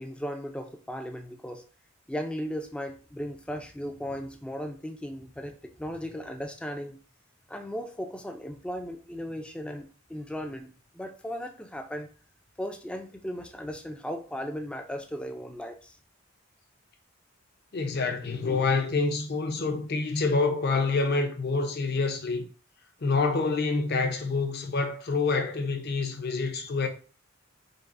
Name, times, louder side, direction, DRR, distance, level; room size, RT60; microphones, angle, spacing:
voice 1, 0.0-1.6 2.1-7.0 7.5-12.1 12.6-16.0, equal, 5° left, 0.3 m, -36 dB
voice 2, 17.7-22.5 23.0-26.9, left 3 dB, 50° left, 0.6 m, -27 dB
5.2 x 2.0 x 2.5 m
head